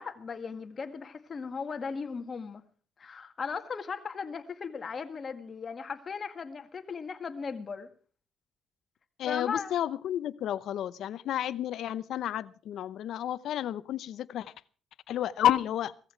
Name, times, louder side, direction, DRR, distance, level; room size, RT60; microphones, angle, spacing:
voice 1, 0.0-2.6 3.0-7.9 9.3-9.7, left 5 dB, 40° left, 7 dB, 1.9 m, -37 dB
voice 2, 9.2-14.5 15.1-15.9, left 11 dB, 75° left, 17 dB, 0.7 m, -31 dB
16.5 x 14.5 x 4.6 m, 0.41 s
cardioid pair, 90°, 0 cm